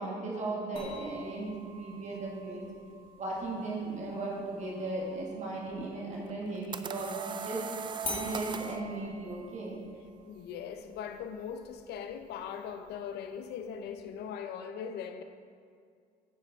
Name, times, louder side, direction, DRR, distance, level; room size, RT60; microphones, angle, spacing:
voice 1, 0.0-2.6 3.2-7.7 8.1-9.8, right 2 dB, 45° right, -3 dB, 1.8 m, -36 dB
sound 1, 0.8-6.3 8.0-13.0, left 2 dB, 35° left, 2.4 m, -47 dB
sound 2, 6.3-8.8, right 6 dB, 30° right, 0.3 m, -39 dB
voice 2, 10.3-15.2, left 7 dB, 75° left, 8 dB, 0.7 m, -40 dB
8.8 x 8.3 x 3.6 m, 2.2 s
cardioid pair, 110°, 17 cm